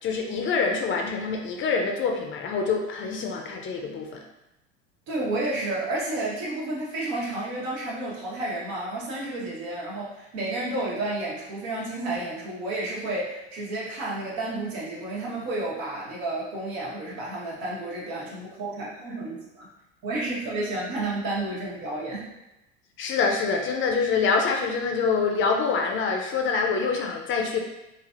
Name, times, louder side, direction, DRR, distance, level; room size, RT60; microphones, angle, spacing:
voice 1, 0.0-4.2 23.0-27.6, left 5 dB, 35° left, 2 dB, 0.5 m, -25 dB
voice 2, 5.1-19.7 20.0-22.3, right 2 dB, 70° right, -5 dB, 1.2 m, -31 dB
3.1 x 2.6 x 2.5 m, 0.92 s
hypercardioid pair, 80°, 34 cm